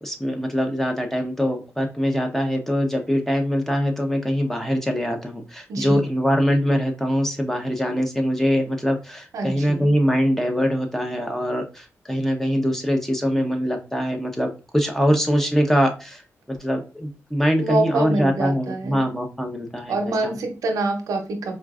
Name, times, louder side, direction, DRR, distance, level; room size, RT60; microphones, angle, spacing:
voice 1, 0.0-20.4, equal, 5° left, 3 dB, 0.8 m, -23 dB
voice 2, 5.7-6.0 9.3-9.9 17.6-19.0 19.9-21.6, right 2 dB, 85° right, 3 dB, 0.8 m, -25 dB
4.5 x 2.5 x 2.4 m, 0.31 s
cardioid pair, 85°, 6 cm